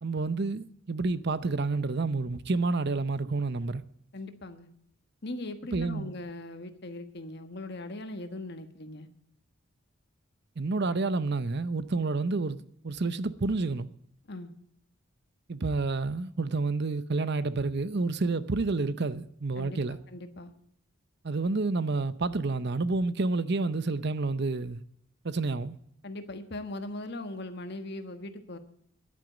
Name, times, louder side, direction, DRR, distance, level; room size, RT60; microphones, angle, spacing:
voice 1, 0.0-3.8 5.7-6.1 10.6-13.9 15.5-20.0 21.2-24.8 25.2-25.8, right 3 dB, 50° right, 0.7 m, -29 dB
voice 2, 4.1-4.7 5.2-9.1 14.3-14.5 19.5-19.8 20.1-20.5 26.0-28.6, left 2 dB, 50° left, 1.3 m, -39 dB
11.0 x 9.0 x 9.0 m
head